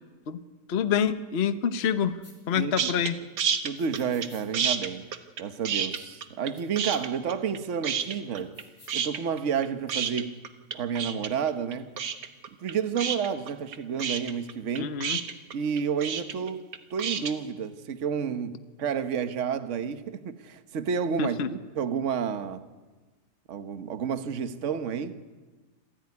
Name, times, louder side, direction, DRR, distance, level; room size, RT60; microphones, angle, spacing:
voice 1, 0.7-3.2 14.8-15.2 21.2-21.5, left 8 dB, 45° left, 1.1 m, -27 dB
sound 1, 2.2-2.4 3.8-4.5 6.0-6.1 6.6-6.7 6.9-7.0 8.3-9.0, left 3 dB, 90° left, 5.3 m, -54 dB
voice 2, 2.5-2.9 3.6-5.1 5.4-8.6 8.9-10.4 10.7-11.9 12.6-14.9 15.5-21.4 21.7-22.7 23.5-25.2, right 7 dB, 50° right, 1.3 m, -30 dB
sound 2, 2.8-3.1 3.4-4.3 4.5-6.5 6.8-7.6 7.8-8.6 8.9-17.3, right 7 dB, 85° right, 1.9 m, -29 dB
27.0 x 15.5 x 9.7 m
omnidirectional pair, 1.8 m